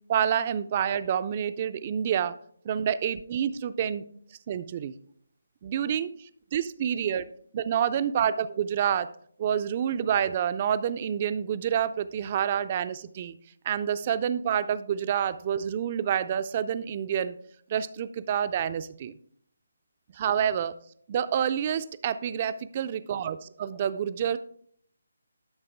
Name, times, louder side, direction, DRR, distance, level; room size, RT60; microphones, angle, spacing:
voice 1, 0.1-2.3 2.6-4.1 4.5-4.9 5.6-7.3 7.5-9.1 9.4-13.3 13.6-17.4 17.7-19.1 20.1-20.7 21.1-24.4, right 9 dB, 35° right, 13 dB, 0.4 m, -28 dB
11.0 x 5.8 x 3.4 m, 0.63 s
figure-of-eight pair, 150°, 0 cm